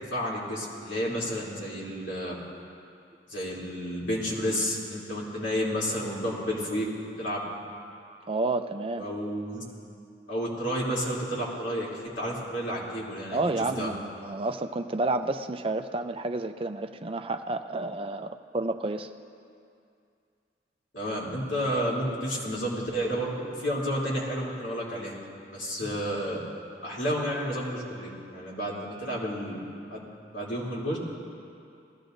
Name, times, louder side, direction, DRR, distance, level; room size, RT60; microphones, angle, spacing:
voice 1, 0.1-2.4 3.3-6.9 7.2-7.4 8.9-9.6 10.3-13.9 20.9-25.2 25.5-26.4 26.8-29.6 29.9-30.0 30.3-31.0, equal, 90° left, -6 dB, 3.1 m, -31 dB
voice 2, 8.3-9.1 13.3-19.1, right 2 dB, 30° right, 8 dB, 0.4 m, -30 dB
20.0 x 14.5 x 2.6 m, 2.4 s
head